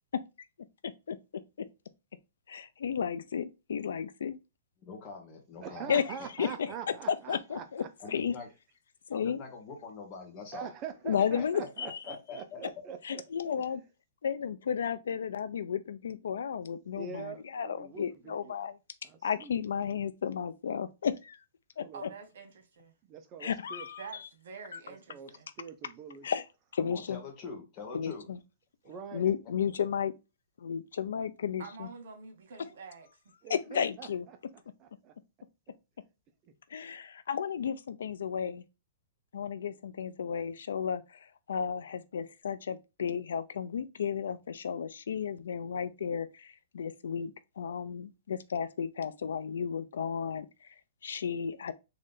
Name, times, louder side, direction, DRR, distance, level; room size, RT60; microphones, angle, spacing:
voice 1, 0.8-1.7 2.5-4.4 5.9-8.3 9.1-9.4 11.0-12.2 13.0-13.8 14.2-18.8 19.2-21.4 21.8-22.1 23.4-24.3 24.7-24.8 26.2-26.4 26.7-27.2 27.9-28.4 29.1-30.1 30.6-31.9 33.5-34.3 36.7-38.6 39.3-50.7 51.0-51.7, left 7 dB, 85° left, 0.5 m, -33 dB
voice 2, 4.8-6.0 8.0-8.5 9.1-10.7 12.1-12.6 26.8-28.3, left 4 dB, 30° left, 1.4 m, -44 dB
voice 3, 5.6-7.9 10.5-13.2 17.0-18.5 19.0-19.5 21.8-22.0 23.1-23.9 24.9-25.3 25.6-26.3 28.8-29.3 33.4-34.1 34.8-35.1, right 7 dB, 25° right, 0.6 m, -44 dB
voice 4, 21.9-22.9 24.0-25.5 31.6-33.1, right 5 dB, 70° right, 1.3 m, -47 dB
3.8 x 3.2 x 3.8 m
hypercardioid pair, 160°, 0 cm